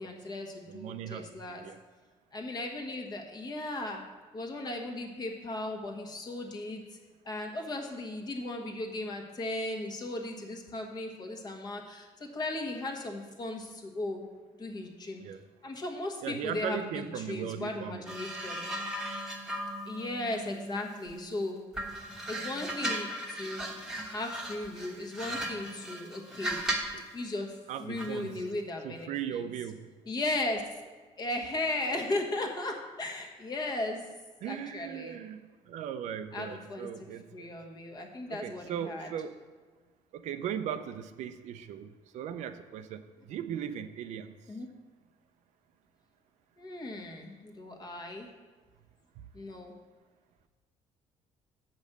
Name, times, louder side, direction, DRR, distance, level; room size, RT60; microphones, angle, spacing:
voice 1, 0.0-1.6 2.3-4.0 4.3-6.8 7.2-14.2 14.6-15.2 15.6-18.6 19.8-21.6 22.3-23.6 24.1-26.6 27.1-27.5 27.8-29.4 30.1-30.6 31.2-34.0 34.4-35.2 36.3-39.1 44.5-44.7 46.6-48.3 49.3-49.8, left 2 dB, 35° left, 2 dB, 1.3 m, -36 dB
voice 2, 0.7-1.8 15.2-15.4 16.2-18.1 26.9-27.1 27.7-28.4 28.8-29.9 34.4-37.5 38.3-39.4 40.1-44.4, right 9 dB, 75° right, 10 dB, 0.5 m, -38 dB
sound 1, 18.1-21.3 21.7-27.0 28.0-28.2, right 1 dB, 5° right, 1.2 m, -37 dB
7.5 x 5.2 x 6.7 m, 1.4 s
cardioid pair, 125°, 12 cm